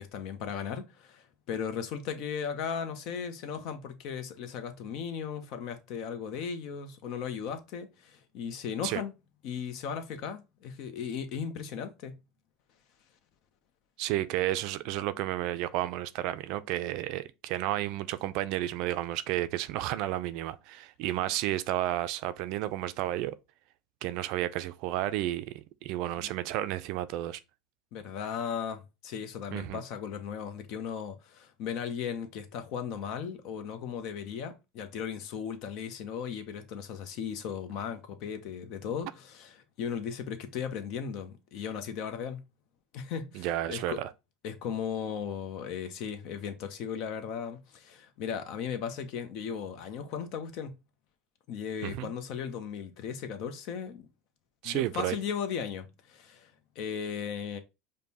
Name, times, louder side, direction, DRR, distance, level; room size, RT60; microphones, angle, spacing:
voice 1, 0.0-9.1 9.4-12.2 26.2-26.3 27.9-42.4 42.9-44.0 44.4-50.7 51.5-54.1 54.6-57.6, left 7 dB, 60° left, 0.7 m, -37 dB
voice 2, 14.0-23.3 24.0-27.4 29.5-29.8 43.3-44.1 51.8-52.1 54.6-55.2, right 14 dB, 65° right, 0.3 m, -32 dB
5.2 x 2.1 x 2.8 m
hypercardioid pair, 95°, 0 cm